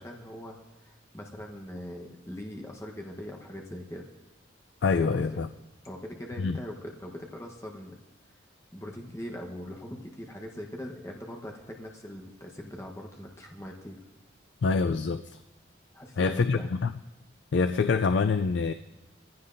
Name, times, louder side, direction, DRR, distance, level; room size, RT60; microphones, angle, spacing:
voice 1, 0.0-4.1 5.0-5.4 5.8-8.0 8.7-14.0 15.9-16.7, equal, 15° left, 0 dB, 1.0 m, -41 dB
voice 2, 4.8-5.5 6.4-6.6 14.6-15.4 16.2-16.9 17.5-18.7, left 4 dB, 65° left, 10 dB, 0.4 m, -25 dB
23.0 x 15.5 x 2.6 m, 1.1 s
head